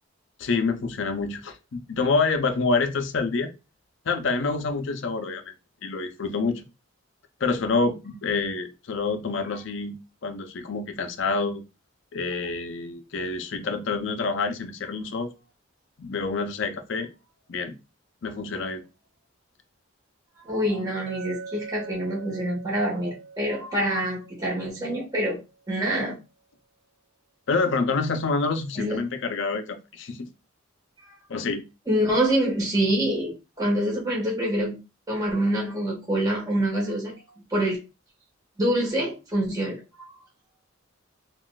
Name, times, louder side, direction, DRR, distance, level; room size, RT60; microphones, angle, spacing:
voice 1, 0.4-3.5 4.1-5.5 5.8-6.6 7.4-10.0 10.2-11.6 12.1-15.3 16.0-17.1 17.5-17.8 18.2-18.8 27.5-30.3 31.3-31.6, left 4 dB, 60° left, 0.5 m, -27 dB
voice 2, 20.4-25.4 25.7-26.2 28.8-29.0 31.0-31.1 31.9-34.8 35.1-37.1 37.5-37.8 38.6-40.1, right 1 dB, 20° right, 1.3 m, -26 dB
Chink clink, 21.1-25.5, right 5 dB, 55° right, 0.8 m, -43 dB
3.8 x 2.4 x 2.3 m
head